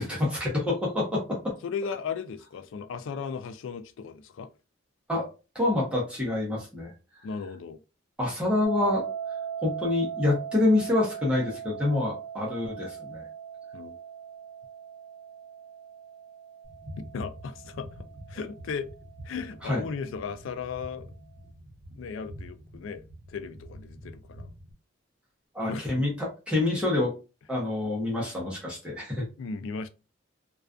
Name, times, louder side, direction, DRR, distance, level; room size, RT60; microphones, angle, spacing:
voice 1, 0.0-1.4 5.1-5.2 5.5-7.2 8.2-9.0 9.6-13.2 19.6-19.8 25.5-27.1 27.5-29.3, left 2 dB, 5° right, 0.7 m, -27 dB
voice 2, 1.6-4.5 7.2-7.8 13.7-14.0 17.0-17.9 18.3-18.9 19.2-21.1 22.0-23.0 23.3-24.5 25.7-26.1 29.4-29.9, left 5 dB, 70° left, 0.3 m, -36 dB
sound 1, 8.6-19.6, right 8 dB, 45° left, 0.9 m, -39 dB
sound 2, 16.6-24.7, equal, 45° right, 0.8 m, -46 dB
2.3 x 2.3 x 2.4 m
head